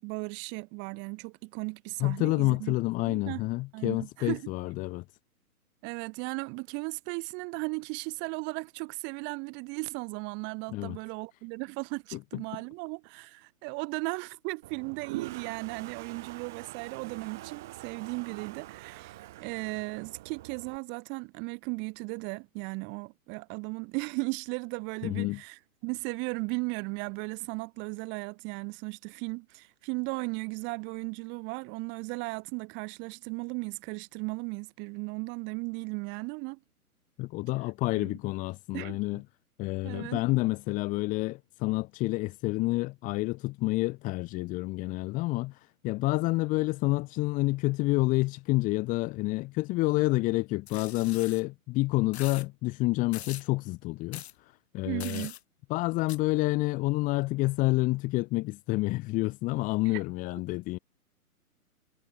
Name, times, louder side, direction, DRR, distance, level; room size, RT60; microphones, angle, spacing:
voice 1, 0.0-2.7 3.0-3.4 3.7-4.5 5.8-36.6 38.0-38.1 38.7-39.0 39.8-40.2 54.8-55.3 59.8-60.0, right 30 dB, 25° right, 7.9 m, -36 dB
voice 2, 2.0-5.0 10.7-11.0 12.1-12.4 25.0-25.4 37.2-39.2 39.6-55.3 55.7-60.8, left 21 dB, 15° left, 1.9 m, -29 dB
Toilet flush, 14.6-20.8, right 17 dB, ahead, 0.5 m, -44 dB
sound 1, 50.7-51.4 52.1-52.5 53.1-53.5 54.1-54.3 55.0-55.4 56.1-56.2, left 11 dB, 45° left, 7.2 m, -42 dB
hypercardioid pair, 145°, 45 cm